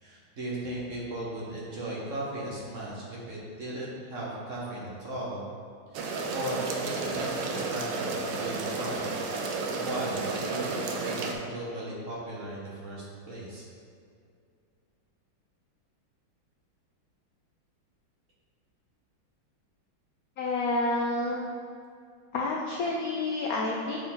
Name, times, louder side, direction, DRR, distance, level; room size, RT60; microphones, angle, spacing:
voice 1, 0.0-5.5 5.9-9.1 9.8-13.6, right 1 dB, 50° right, -5 dB, 1.1 m, -37 dB
sound 1, 5.9-11.3, right 3 dB, 75° right, 1.3 m, -32 dB
voice 2, 20.4-21.5 22.3-24.1, left 2 dB, 85° left, -1 dB, 0.8 m, -29 dB
7.7 x 4.1 x 3.8 m, 2.3 s
omnidirectional pair, 2.2 m